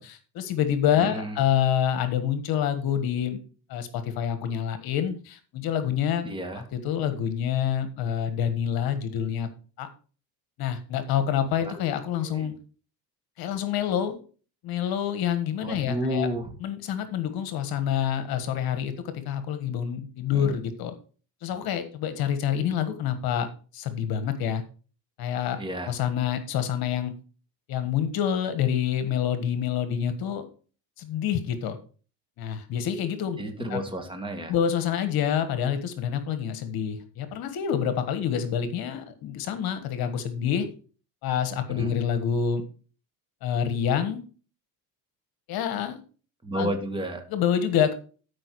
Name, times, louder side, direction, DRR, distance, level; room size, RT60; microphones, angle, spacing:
voice 1, 0.0-3.4 3.7-6.3 6.7-9.5 9.8-9.9 10.6-12.5 13.4-14.2 14.6-16.3 16.6-20.9 21.4-23.5 23.7-24.6 25.2-27.1 27.7-30.4 31.0-31.8 32.4-33.8 34.5-40.7 41.2-42.7 43.4-44.2 45.5-46.0 46.5-46.7 47.3-47.9, left 9 dB, 65° left, 9 dB, 1.5 m, -27 dB
voice 2, 1.0-1.4 6.2-6.6 12.2-12.5 15.6-16.5 20.3-20.5 25.6-25.9 33.4-34.5 41.7-41.9 46.4-47.2, equal, 15° right, 5 dB, 2.1 m, -31 dB
12.5 x 5.3 x 4.7 m, 0.38 s
cardioid pair, 115°, 39 cm